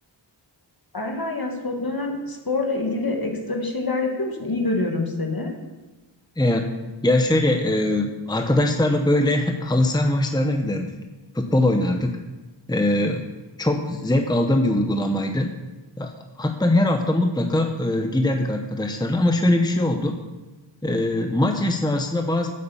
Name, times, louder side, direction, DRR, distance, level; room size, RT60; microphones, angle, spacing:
voice 1, 0.9-5.5, left 2 dB, 50° left, 2 dB, 2.1 m, -26 dB
voice 2, 6.4-6.7 7.0-10.9 11.3-12.1 12.7-13.2 13.6-15.5 16.0-16.1 16.4-20.1 20.8-22.5, left 1 dB, 10° left, 4 dB, 0.9 m, -21 dB
8.7 x 8.5 x 7.1 m, 1.2 s
wide cardioid pair, 40°, 46 cm